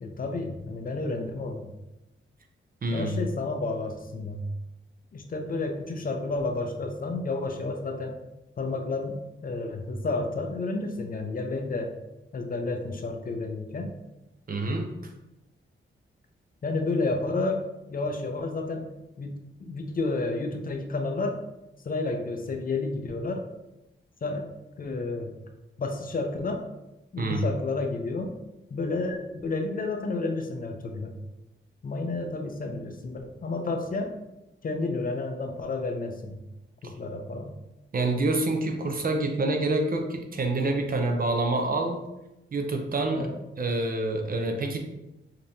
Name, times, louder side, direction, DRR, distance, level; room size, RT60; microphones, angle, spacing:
voice 1, 0.0-1.7 2.9-4.5 5.1-8.1 8.6-11.9 12.3-13.9 16.6-17.6 17.9-18.9 19.2-21.4 21.9-23.4 24.2-24.5 24.8-25.4 25.8-26.6 27.1-28.4 28.7-31.2 31.8-34.1 34.6-36.4 36.8-37.6 43.1-43.3, left 3 dB, 45° left, 4 dB, 0.5 m, -31 dB
voice 2, 2.8-3.2 14.5-15.1 27.2-27.4 37.9-42.0 42.5-43.3 43.6-44.8, right 2 dB, 45° right, 4 dB, 0.6 m, -27 dB
5.2 x 2.8 x 2.7 m, 0.94 s
wide cardioid pair, 120°, 21 cm